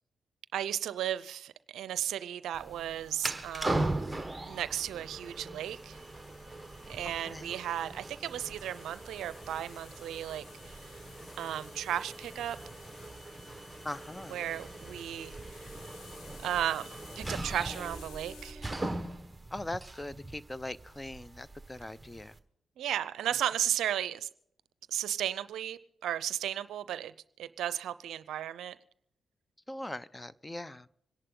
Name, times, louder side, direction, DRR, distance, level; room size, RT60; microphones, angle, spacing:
voice 1, 0.5-3.9 4.5-6.0 6.9-10.9 11.4-12.6 14.3-15.8 16.4-18.7 22.8-24.3 24.9-27.1 27.4-28.8, right 11 dB, 75° right, 16 dB, 0.5 m, -35 dB
sound 1, 2.5-22.4, right 2 dB, 15° right, 1.3 m, -40 dB
sound 2, 5.6-18.5, left 6 dB, 70° left, 1.8 m, -56 dB
voice 2, 7.2-7.5 13.8-14.4 19.5-22.3 29.7-30.9, left 1 dB, 20° left, 19 dB, 0.7 m, -41 dB
26.0 x 11.0 x 3.8 m, 0.71 s
supercardioid pair, 45°, 0 cm